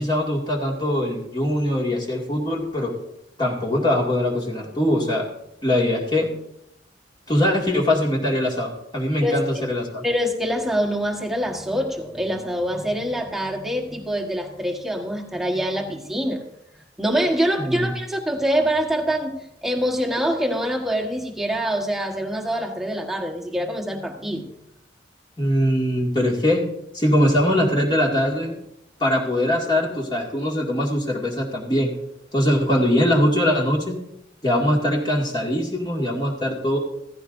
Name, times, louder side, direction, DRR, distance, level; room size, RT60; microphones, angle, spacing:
voice 1, 0.0-2.9 3.4-5.3 5.6-6.3 7.3-10.0 17.7-17.9 25.4-26.6 26.9-28.6 29.0-31.9 32.3-34.0 34.4-36.8, left 1 dB, 25° left, -2 dB, 2.2 m, -22 dB
voice 2, 10.0-16.4 17.0-24.5, equal, ahead, 0 dB, 1.4 m, -25 dB
15.5 x 15.5 x 2.7 m, 0.81 s
head